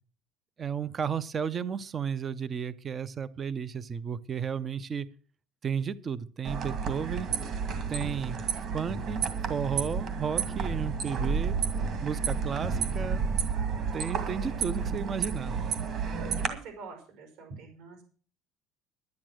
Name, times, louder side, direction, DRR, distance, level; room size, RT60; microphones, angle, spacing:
voice 1, 0.6-5.1 5.6-7.3 7.9-8.4 8.7-9.2 9.5-11.6 12.0-13.2 13.9-15.7, right 7 dB, 25° right, 17 dB, 0.5 m, -33 dB
sound 1, 6.4-16.5, right 5 dB, 40° right, 2.1 m, -31 dB
voice 2, 16.4-18.0, right 4 dB, 65° right, 5 dB, 5.2 m, -46 dB
11.5 x 10.5 x 6.2 m, 0.41 s
cardioid pair, 175°, 0 cm